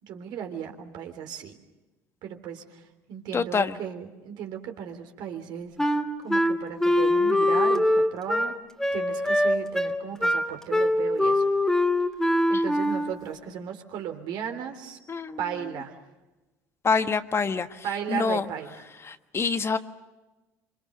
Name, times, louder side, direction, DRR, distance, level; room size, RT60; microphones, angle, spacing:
voice 1, 0.0-1.5 2.2-2.8 3.1-5.7 6.2-8.6 8.9-11.4 12.5-15.0 15.4-15.9 17.8-18.8, right 8 dB, 60° right, 5 dB, 3.4 m, -35 dB
voice 2, 3.3-3.7 12.5-12.6 15.1-15.4 16.8-17.7 18.1-18.4 19.1-19.8, left 5 dB, 30° left, 9 dB, 1.3 m, -26 dB
Wind instrument woodwind instrument, 5.8-13.2, left 1 dB, 5° left, 2.5 m, -23 dB
26.0 x 26.0 x 6.7 m, 1.1 s
hypercardioid pair, 65°, 8 cm